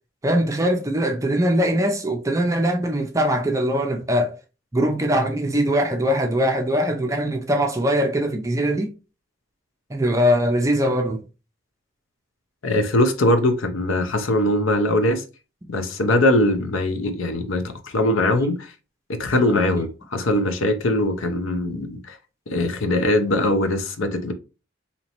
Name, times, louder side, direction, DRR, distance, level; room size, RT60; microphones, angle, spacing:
voice 1, 0.2-4.3 4.7-8.9 9.9-11.2, equal, 15° right, 0.4 m, -21 dB
voice 2, 12.6-15.2 15.7-18.7 19.1-22.2 22.5-24.3, left 1 dB, 70° left, 0.6 m, -21 dB
4.2 x 2.9 x 2.9 m
head